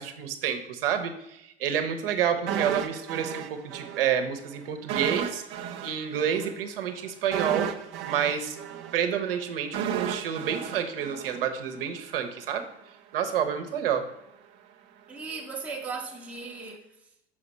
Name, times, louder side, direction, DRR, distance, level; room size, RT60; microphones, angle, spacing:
voice 1, 0.0-5.4 5.8-7.7 8.0-8.6 8.9-12.6 13.1-14.1, right 8 dB, 60° right, 0.9 m, -29 dB
sound 1, 2.5-4.1 4.4-4.5 4.9-12.0 12.3-12.4, right 8 dB, 35° right, 0.5 m, -33 dB
voice 2, 15.1-17.1, right 4 dB, 5° right, 0.8 m, -37 dB
5.9 x 4.7 x 4.3 m
figure-of-eight pair, 80°, 32 cm